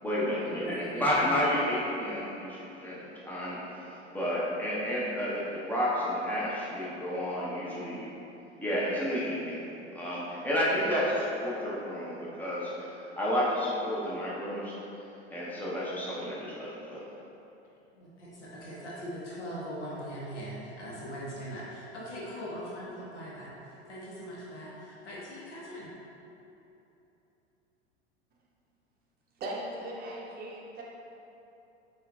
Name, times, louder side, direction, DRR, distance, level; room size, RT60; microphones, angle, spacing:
voice 1, 0.0-8.1 8.6-14.8 15.3-17.0, equal, 5° left, -7 dB, 0.8 m, -31 dB
voice 2, 0.5-1.3 17.9-25.9, equal, 80° left, -6 dB, 0.9 m, -41 dB
voice 3, 29.4-30.8, right 1 dB, 25° right, -4 dB, 0.8 m, -38 dB
5.5 x 2.6 x 2.3 m, 3.0 s
figure-of-eight pair, 90°, 35 cm